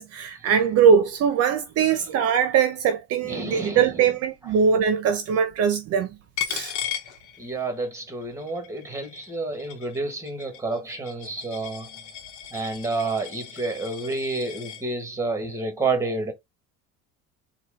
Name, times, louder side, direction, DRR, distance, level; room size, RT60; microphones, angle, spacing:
voice 1, 0.0-6.1 6.5-6.7, right 7 dB, 50° right, 0.7 m, -21 dB
voice 2, 3.2-4.1 4.4-4.5 6.6-6.7 7.4-11.9 12.5-16.3, right 3 dB, 10° right, 1.5 m, -30 dB
Coin (dropping), 6.4-7.9 8.2-14.8, left 10 dB, 70° left, 1.0 m, -37 dB
4.3 x 2.4 x 3.6 m
cardioid pair, 130°, 31 cm